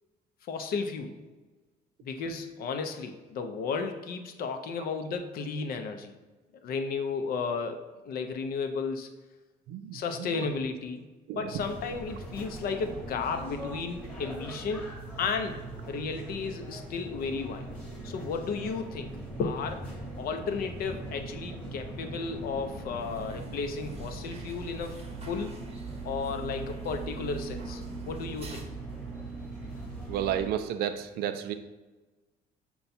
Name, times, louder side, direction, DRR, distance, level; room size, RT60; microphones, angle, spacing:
voice 1, 0.5-1.1 2.0-6.1 6.6-7.8 8.0-9.1 9.9-11.0 11.3-14.9 15.2-17.6 18.0-19.1 19.4-19.9 20.2-25.0 25.3-25.6 26.0-28.6, left 5 dB, 60° left, 6 dB, 0.5 m, -33 dB
voice 2, 9.7-10.5 11.3-11.6 30.1-31.5, right 10 dB, 70° right, 10 dB, 0.4 m, -32 dB
sound 1, 11.5-30.5, right 2 dB, 5° left, 1.0 m, -41 dB
Biblioteca Publica Gente Susurros, 23.0-28.6, right 3 dB, 35° right, 0.8 m, -46 dB
5.5 x 2.3 x 4.1 m, 1.2 s
cardioid pair, 110°, 17 cm